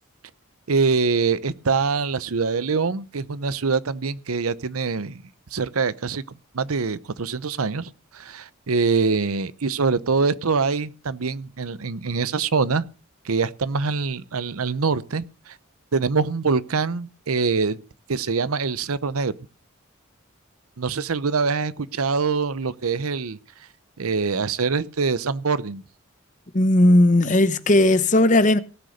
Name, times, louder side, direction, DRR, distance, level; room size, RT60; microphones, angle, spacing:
voice 1, 0.7-5.2 5.5-6.2 6.5-12.8 13.2-15.5 15.9-17.8 18.1-19.3 20.8-23.4 24.0-25.8, right 4 dB, 90° right, 0.8 m, -24 dB
voice 2, 26.5-28.6, left 1 dB, 35° left, 0.9 m, -16 dB
18.0 x 6.6 x 6.4 m
head